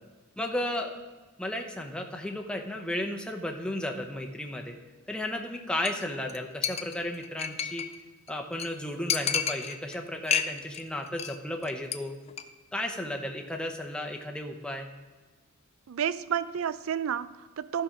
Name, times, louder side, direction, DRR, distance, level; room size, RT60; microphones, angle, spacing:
voice 1, 0.4-0.9 1.4-4.8 5.1-7.8 8.3-12.1 12.7-14.9, left 1 dB, 5° left, 2 dB, 0.8 m, -34 dB
Chink clink, 5.8-6.0 6.3-6.4 6.6-8.0 8.3-8.4 8.6-8.7 9.1-10.0 10.3-10.8 11.1-11.4 11.6-12.0 12.3-12.4, left 8 dB, 30° left, 0.4 m, -30 dB
voice 2, 15.9-17.8, right 8 dB, 70° right, 16 dB, 0.4 m, -31 dB
13.0 x 5.7 x 5.1 m, 1.3 s
head